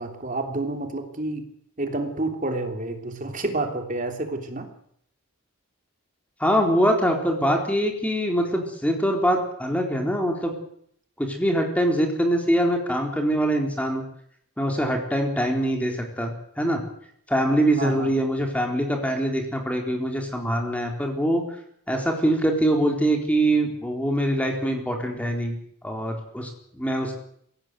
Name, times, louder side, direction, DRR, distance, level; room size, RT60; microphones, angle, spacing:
voice 1, 0.0-1.5 1.8-4.7 17.8-18.1, right 2 dB, 35° right, 5 dB, 3.1 m, -29 dB
voice 2, 6.4-10.5 11.2-14.0 14.6-16.8 17.3-21.4 21.9-25.6 25.8-27.2, right 1 dB, 5° left, 2 dB, 4.0 m, -23 dB
22.5 x 17.0 x 9.3 m, 0.68 s
head